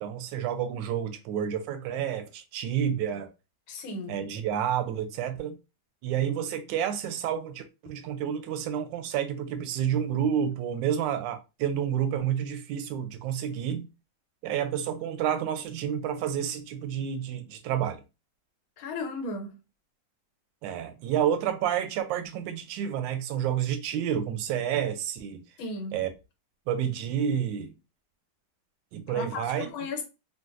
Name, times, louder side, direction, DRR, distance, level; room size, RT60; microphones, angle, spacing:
voice 1, 0.0-3.3 4.1-5.6 6.0-13.9 14.4-18.0 20.6-25.4 25.9-26.1 26.7-27.7 28.9-29.7, right 9 dB, 75° right, 1.1 m, -29 dB
voice 2, 3.7-4.2 18.8-19.6 25.6-26.0 29.1-30.0, left 3 dB, 85° left, 1.6 m, -35 dB
3.9 x 2.2 x 2.4 m
omnidirectional pair, 2.2 m